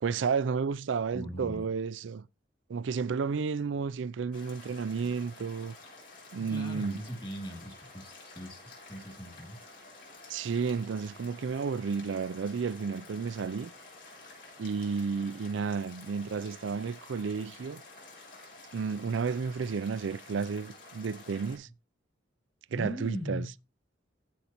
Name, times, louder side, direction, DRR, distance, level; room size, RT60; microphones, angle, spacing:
voice 1, 0.0-2.2 2.7-5.7 6.3-7.0 10.3-13.7 14.6-17.8 18.7-21.7 22.7-23.5, right 5 dB, 90° right, 0.4 m, -32 dB
voice 2, 1.1-1.7 6.4-9.6 22.7-23.5, equal, 25° left, 2.6 m, -39 dB
sound 1, 4.3-21.6, left 3 dB, 50° left, 6.0 m, -51 dB
15.0 x 5.3 x 2.9 m
head